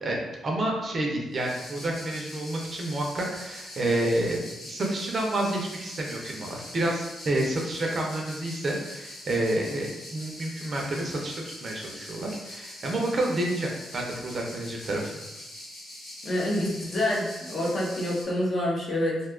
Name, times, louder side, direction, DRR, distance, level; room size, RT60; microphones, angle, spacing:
voice 1, 0.0-15.2, right 1 dB, 35° right, -1 dB, 0.5 m, -29 dB
sound 1, 1.3-18.2, left 1 dB, 75° left, 1.2 m, -43 dB
voice 2, 16.2-19.2, left 1 dB, 40° left, -3 dB, 0.7 m, -27 dB
2.7 x 2.3 x 3.6 m, 0.97 s
wide cardioid pair, 155°, 0 cm